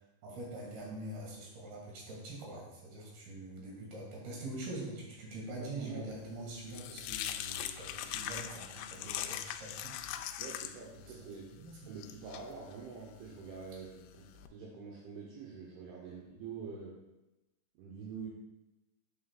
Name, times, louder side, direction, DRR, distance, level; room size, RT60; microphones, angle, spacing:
voice 1, 0.2-10.0 11.1-11.9 16.1-16.2, right 1 dB, 55° right, -3 dB, 3.6 m, -44 dB
voice 2, 5.6-6.2 10.4-17.0 17.8-18.3, right 5 dB, 75° right, -4 dB, 3.2 m, -46 dB
sound 1, 6.2-14.5, left 11 dB, 85° left, 2.6 m, -42 dB
8.7 x 7.8 x 2.4 m, 0.98 s
omnidirectional pair, 5.7 m